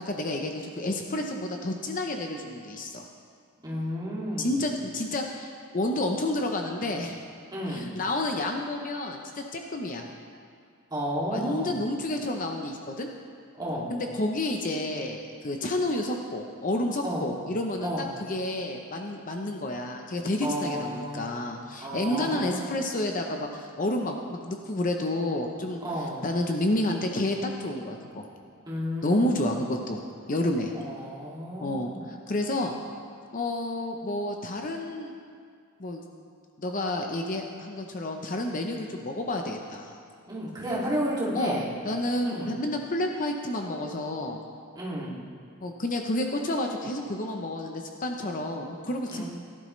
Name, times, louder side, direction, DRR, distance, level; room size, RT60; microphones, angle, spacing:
voice 1, 0.1-3.0 4.4-7.2 7.7-10.1 11.3-13.1 13.9-25.8 26.2-28.3 29.0-30.0 30.3-30.7 31.6-32.7 33.3-35.1 35.8-36.0 36.6-40.0 41.3-41.6 41.8-44.4 45.6-49.2, left 1 dB, 40° left, 3 dB, 0.7 m, -30 dB
voice 2, 3.6-4.6 7.5-7.9 10.9-11.8 13.6-13.9 17.0-17.3 17.8-18.0 20.4-21.3 21.8-22.7 25.8-26.2 28.7-29.6 30.7-32.0 40.3-41.6 42.2-42.5 44.7-45.2 49.1-49.2, equal, 20° right, -7 dB, 2.4 m, -32 dB
17.5 x 11.0 x 3.2 m, 2.2 s
head